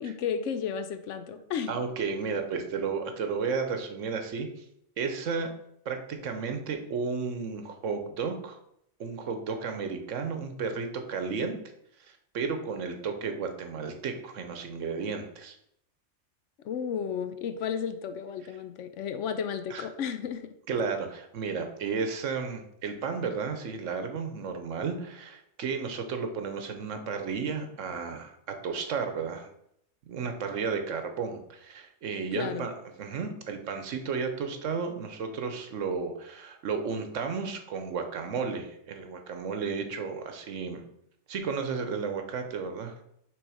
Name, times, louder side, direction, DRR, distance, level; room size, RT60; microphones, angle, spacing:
voice 1, 0.0-1.8 16.6-20.5 32.3-32.7, left 7 dB, 80° left, 9 dB, 1.0 m, -33 dB
voice 2, 1.7-4.5 5.0-5.5 5.8-8.6 9.0-11.6 12.1-15.5 19.7-19.9 20.7-29.5 30.1-32.7 33.0-40.8 41.3-42.9, right 5 dB, 85° right, 6 dB, 1.2 m, -33 dB
6.0 x 3.4 x 4.9 m, 0.75 s
omnidirectional pair, 1.3 m